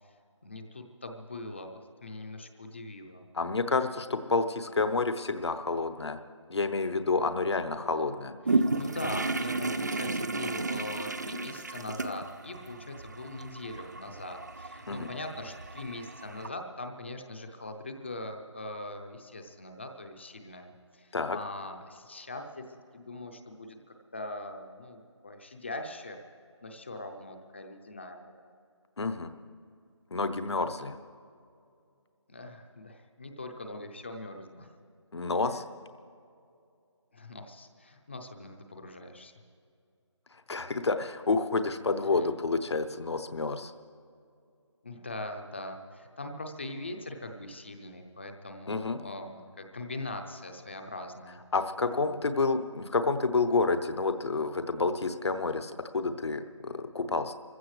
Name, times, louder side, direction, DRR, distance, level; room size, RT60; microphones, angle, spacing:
voice 1, 0.4-3.2 8.5-22.6 22.9-26.2 26.6-28.5 32.3-34.7 35.4-35.6 37.1-39.3 42.0-42.3 44.8-51.4 51.9-52.2, left 2 dB, 25° left, 5 dB, 0.6 m, -41 dB
voice 2, 3.3-6.2 6.5-8.3 14.9-15.1 21.1-21.4 29.0-29.3 30.1-31.0 35.1-35.6 40.5-43.7 48.7-49.0 51.5-57.3, left 3 dB, 60° left, 9 dB, 0.8 m, -29 dB
sound 1, 8.4-16.5, right 3 dB, 35° right, 0.4 m, -33 dB
25.0 x 15.5 x 3.2 m, 2.4 s
figure-of-eight pair, 170°, 16 cm